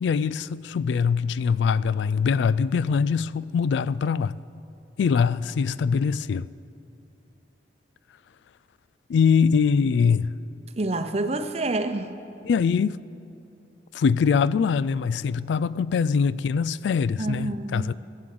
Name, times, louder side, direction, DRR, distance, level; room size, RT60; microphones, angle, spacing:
voice 1, 0.0-4.4 5.0-6.5 9.1-10.3 12.4-13.0 13.9-17.9, left 6 dB, 80° left, 0.3 m, -23 dB
voice 2, 10.8-12.1 17.2-17.9, right 2 dB, 35° right, 0.7 m, -28 dB
15.0 x 7.6 x 7.7 m
head